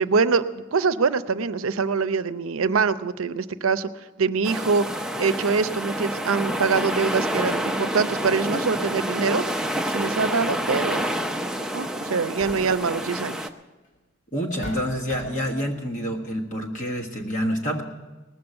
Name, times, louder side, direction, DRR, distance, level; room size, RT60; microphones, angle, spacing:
voice 1, 0.0-9.4 9.8-11.0 11.7-13.5, right 5 dB, 90° right, 12 dB, 0.6 m, -24 dB
sound 1, 4.4-13.5, equal, 5° right, 0.6 m, -28 dB
sound 2, 11.0-11.1 12.1-12.9 13.9-14.0 14.6-15.6, equal, 65° left, 3.7 m, -39 dB
voice 2, 14.3-17.8, equal, 40° left, -1 dB, 1.5 m, -27 dB
19.0 x 7.1 x 7.9 m, 1.2 s
head